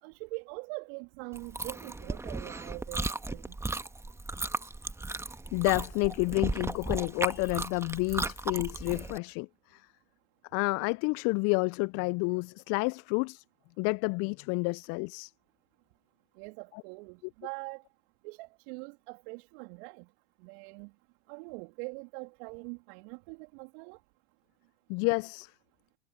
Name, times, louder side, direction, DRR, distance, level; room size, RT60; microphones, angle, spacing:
voice 1, 0.0-3.6 16.4-17.8 18.2-20.1 20.4-20.9 21.3-24.0, right 34 dB, 55° right, 3.0 m, -43 dB
Chewing mastication, 1.3-9.2, right 2 dB, 5° right, 1.6 m, -36 dB
voice 2, 5.5-9.8 10.5-13.4 13.8-15.3 24.9-25.5, left 30 dB, 40° left, 0.6 m, -30 dB
hypercardioid pair, 90°, 37 cm